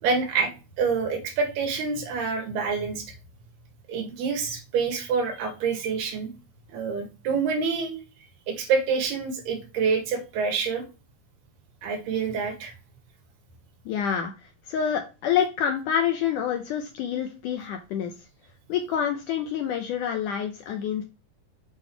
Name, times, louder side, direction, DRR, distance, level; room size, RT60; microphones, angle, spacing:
voice 1, 0.0-0.5 0.8-3.1 3.9-6.3 6.7-8.0 8.5-10.8 11.8-12.7, right 5 dB, 85° right, 2 dB, 3.9 m, -27 dB
voice 2, 13.9-14.3 14.7-18.1 18.7-21.0, left 8 dB, 75° left, 5 dB, 2.0 m, -27 dB
8.2 x 3.6 x 4.5 m, 0.31 s
omnidirectional pair, 4.4 m